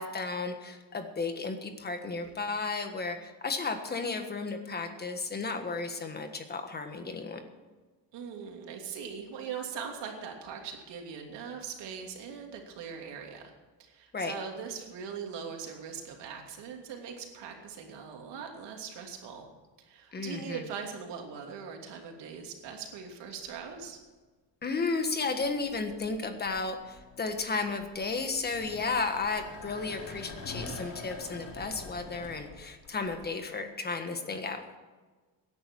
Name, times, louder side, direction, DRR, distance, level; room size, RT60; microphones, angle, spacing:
voice 1, 0.0-7.4 14.1-14.3 20.1-20.6 24.6-34.6, left 4 dB, 25° left, 6 dB, 1.5 m, -33 dB
voice 2, 8.1-13.5 13.8-19.5 19.8-24.0, right 6 dB, 80° right, 2 dB, 3.0 m, -41 dB
sound 1, 23.4-23.9 25.0-33.3, left 3 dB, 45° left, 3.5 m, -46 dB
17.0 x 10.5 x 4.7 m, 1.3 s
cardioid pair, 165°, 42 cm